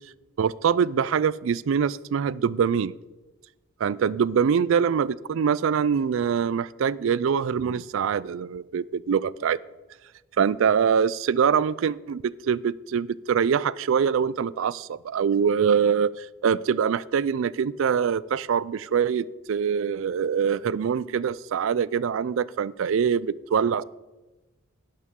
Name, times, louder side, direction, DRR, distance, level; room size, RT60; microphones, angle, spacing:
voice 1, 0.4-2.9 3.8-9.6 10.4-23.8, right 7 dB, 65° right, 20 dB, 0.3 m, -24 dB
11.0 x 11.0 x 3.7 m, 1.1 s
head